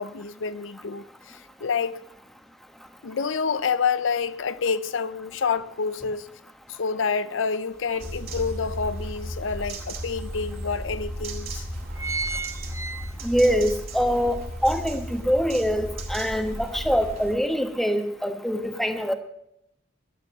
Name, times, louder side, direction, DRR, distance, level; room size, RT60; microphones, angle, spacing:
voice 1, 0.0-2.0 3.0-6.3 6.7-11.7, left 5 dB, 85° left, 0.6 m, -28 dB
sound 1, 7.7-7.8 8.3-9.5 10.1-10.2 10.5-10.6 11.2-11.4 11.7-13.5 13.9-14.0, right 3 dB, 15° right, 0.7 m, -33 dB
sound 2, 8.0-17.3, equal, 50° right, 2.9 m, -35 dB
voice 2, 13.2-19.1, equal, ahead, 1.2 m, -24 dB
12.0 x 11.5 x 6.6 m
head